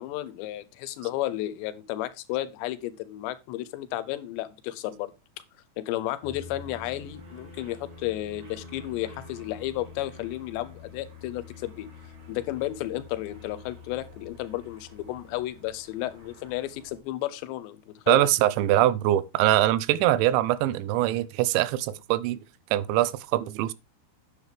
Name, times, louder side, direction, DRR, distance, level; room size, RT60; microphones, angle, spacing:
voice 1, 0.0-5.1 5.8-11.9 12.3-18.2, left 14 dB, 80° left, 2.9 m, -33 dB
sound 1, 6.2-17.0, left 4 dB, 35° right, 4.3 m, -47 dB
voice 2, 18.1-22.4 22.7-23.7, right 14 dB, 90° right, 3.0 m, -23 dB
9.8 x 7.6 x 3.4 m
omnidirectional pair, 5.2 m